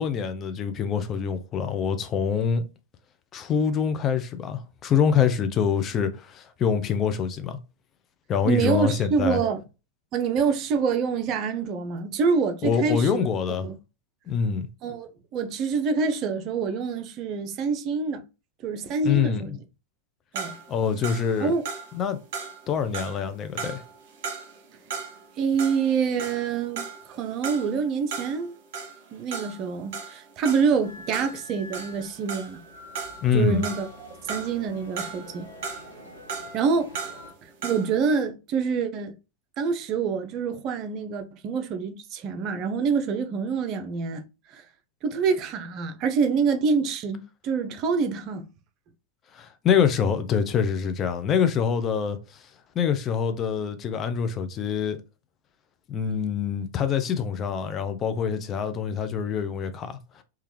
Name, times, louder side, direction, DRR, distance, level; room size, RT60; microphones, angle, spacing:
voice 1, 0.0-2.6 3.3-7.6 8.3-9.4 12.6-13.7 14.3-14.7 19.0-19.4 20.7-21.5 21.9-22.2 22.7-23.8 33.2-33.7 49.3-52.4 52.8-55.0 55.9-60.2, left 7 dB, 30° left, 0.4 m, -25 dB
voice 2, 8.5-9.6 10.1-13.7 14.8-18.2 18.6-19.6 20.3-20.6 21.4-21.6 25.4-28.5 29.1-32.6 33.3-35.5 36.5-36.9 37.4-39.1 39.6-44.2 44.5-44.6 45.0-48.5, right 5 dB, 35° right, 0.5 m, -26 dB
sound 1, 20.4-25.3 25.6-32.7 33.0-34.6 35.0-38.0, right 5 dB, 50° right, 0.9 m, -37 dB
sound 2, 30.8-37.3, left 2 dB, 80° left, 0.8 m, -46 dB
3.2 x 2.3 x 3.1 m
figure-of-eight pair, 90°, 0 cm